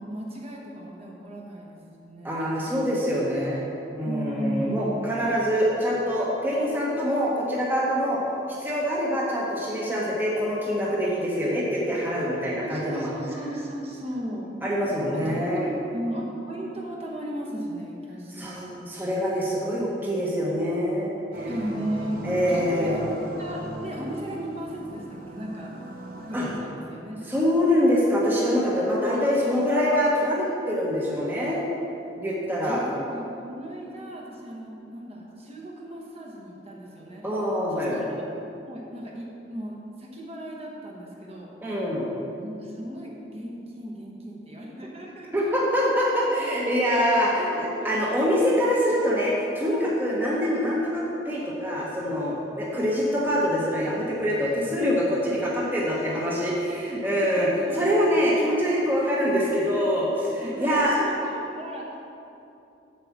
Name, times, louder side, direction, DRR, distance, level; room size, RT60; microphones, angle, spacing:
voice 1, 0.0-3.1 4.0-4.9 12.6-14.5 15.1-18.8 21.5-23.1 23.4-25.7 26.3-27.2 32.6-37.2 37.7-38.2 38.7-41.5 42.4-45.3 45.9-47.0 47.4-48.0 48.9-49.0 50.3-50.5 52.7-53.1 56.0-56.4 56.7-56.9 57.1-57.9 60.4-61.9, right 1 dB, 35° right, -2 dB, 1.2 m, -36 dB
voice 2, 2.2-3.6 4.0-8.2 8.6-13.1 14.6-15.7 18.3-21.5 22.2-23.0 26.3-26.5 27.3-31.7 32.1-32.8 37.2-37.9 41.6-42.1 45.3-61.0, equal, 10° right, -5 dB, 1.0 m, -25 dB
sound 1, 21.3-26.5, right 1 dB, 50° right, 0.9 m, -37 dB
7.6 x 4.9 x 7.2 m, 2.8 s
head